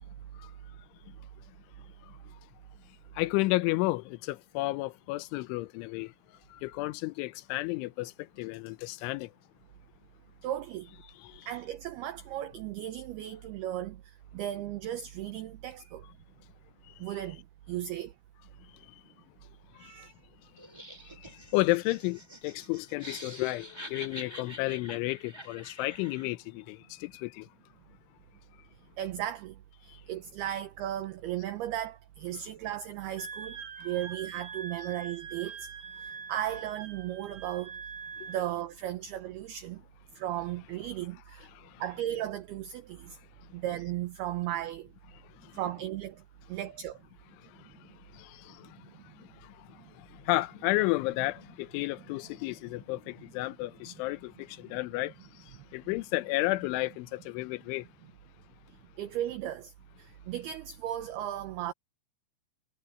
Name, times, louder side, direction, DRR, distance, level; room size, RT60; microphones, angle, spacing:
voice 1, 1.5-2.4 3.1-9.3 11.1-11.5 16.9-17.2 18.6-19.0 19.7-20.1 21.0-27.5 29.9-30.0 33.8-33.9 38.2-38.3 41.5-41.8 43.1-43.6 45.1-45.6 47.4-57.9, left 20 dB, 80° left, 3.2 m, -33 dB
voice 2, 10.4-10.9 11.5-16.1 17.0-18.1 19.8-20.1 29.0-35.7 36.0-37.8 38.3-39.8 40.2-41.5 41.8-43.2 43.5-44.9 45.5-46.2 46.5-47.0 48.5-48.6 49.2-49.3 49.8-49.9 53.9-54.0 59.0-59.7 60.0-61.7, right 12 dB, 75° right, 2.4 m, -36 dB
Laughter, 20.6-26.4, right 1 dB, 5° right, 4.8 m, -47 dB
Wind instrument woodwind instrument, 33.2-38.5, right 6 dB, 45° right, 3.6 m, -43 dB
omnidirectional pair, 5.5 m